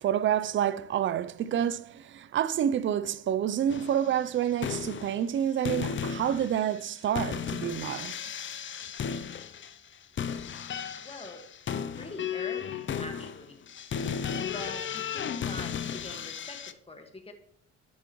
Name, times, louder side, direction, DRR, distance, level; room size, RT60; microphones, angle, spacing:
voice 1, 0.0-8.2, right 10 dB, 40° right, 0.4 m, -28 dB
sound 1, 3.7-4.1 4.5-5.4 5.6-16.7, left 7 dB, 40° left, 0.5 m, -35 dB
voice 2, 11.0-11.4 11.9-13.6 14.4-17.3, left 2 dB, 20° left, 1.6 m, -43 dB
11.0 x 7.1 x 3.0 m
cardioid pair, 90°, 30 cm